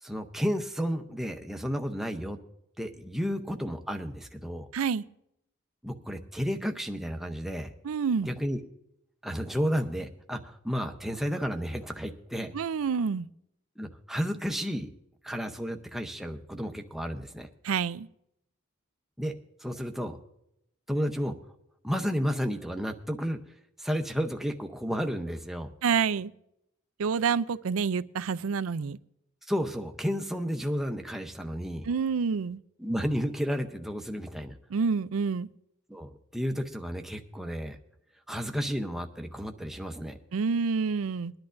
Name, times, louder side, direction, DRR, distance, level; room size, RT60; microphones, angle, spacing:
voice 1, 0.0-2.4 2.8-4.7 5.8-7.7 8.2-8.6 9.2-12.5 13.8-14.9 15.2-17.5 19.2-20.2 20.9-21.3 21.8-23.4 23.8-25.7 29.5-31.9 32.8-34.5 35.9-37.8 38.3-40.2, equal, ahead, 0.7 m, -32 dB
voice 2, 4.7-5.0 7.8-8.3 12.5-13.3 17.6-18.1 25.8-26.3 27.0-29.0 31.9-32.6 34.7-35.5 40.3-41.3, right 5 dB, 75° right, 0.4 m, -28 dB
22.0 x 10.5 x 2.6 m
head